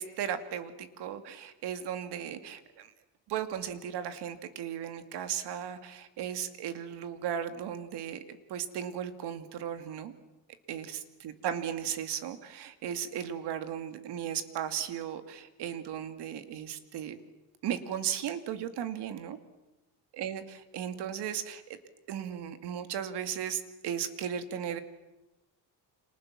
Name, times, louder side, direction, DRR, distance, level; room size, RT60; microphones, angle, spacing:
voice 1, 0.0-2.9 3.3-10.1 10.7-17.2 17.6-19.4 20.2-21.8 22.1-24.8, right 9 dB, 75° right, 9 dB, 2.4 m, -36 dB
29.5 x 26.5 x 7.5 m, 1.0 s
cardioid pair, 155°, 40 cm